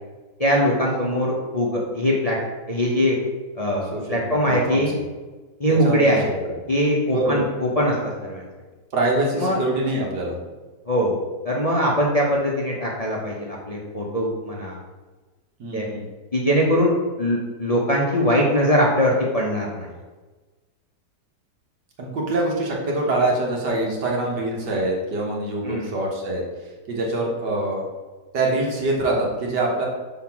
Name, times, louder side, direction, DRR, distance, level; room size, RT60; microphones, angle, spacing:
voice 1, 0.4-2.4 2.7-3.2 3.6-4.9 5.6-6.3 6.7-8.4 9.4-9.6 10.9-11.2 11.4-14.8 15.7-15.9 16.3-16.9 17.2-19.9 25.6-25.9, equal, 30° left, -3 dB, 0.8 m, -21 dB
voice 2, 3.9-5.0 5.7-6.2 7.1-7.4 8.9-10.4 15.6-16.0 22.0-26.4 26.9-27.8 28.3-29.9, right 2 dB, 75° right, -2 dB, 2.0 m, -24 dB
5.8 x 4.1 x 5.9 m, 1.3 s
omnidirectional pair, 1.8 m